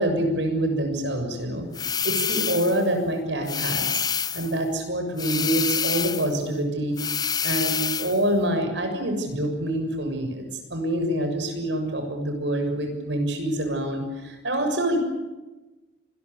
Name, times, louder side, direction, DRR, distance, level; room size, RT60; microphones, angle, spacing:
voice 1, 0.0-1.7 2.0-4.0 4.3-10.4 10.7-15.0, right 1 dB, 70° right, 4 dB, 7.0 m, -26 dB
sound 1, 1.7-2.8 3.5-4.6 5.2-6.4 7.0-8.2, left 7 dB, 20° left, 0.8 m, -27 dB
27.0 x 21.5 x 8.4 m, 1.1 s
head